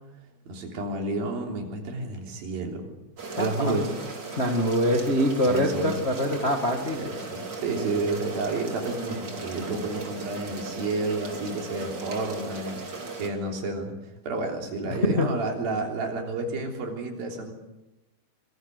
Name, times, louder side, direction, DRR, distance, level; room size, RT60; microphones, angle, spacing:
voice 1, 0.5-2.8 3.3-3.9 5.5-6.1 6.9-13.9 14.2-17.5, right 2 dB, 80° right, 2 dB, 5.3 m, -30 dB
sound 1, 3.2-13.3, right 3 dB, 30° right, 3.1 m, -37 dB
voice 2, 3.4-3.8 4.4-7.1 14.8-15.3, left 1 dB, 35° left, 3 dB, 1.0 m, -24 dB
25.0 x 21.5 x 6.6 m, 0.99 s
omnidirectional pair, 4.1 m